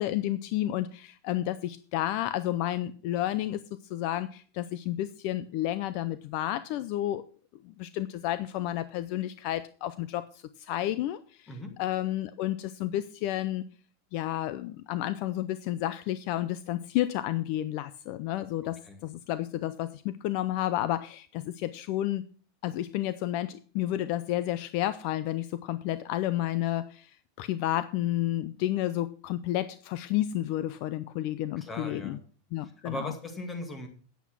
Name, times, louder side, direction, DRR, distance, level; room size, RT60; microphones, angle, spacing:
voice 1, 0.0-3.6 3.9-7.2 7.6-11.5 11.8-13.6 14.1-22.2 22.6-32.2 32.5-33.1, left 14 dB, 50° left, 14 dB, 0.5 m, -31 dB
voice 2, 18.6-19.0 31.6-32.2 32.6-33.9, left 1 dB, 15° left, 6 dB, 2.1 m, -39 dB
9.3 x 8.1 x 6.0 m, 0.42 s
supercardioid pair, 155°, 0 cm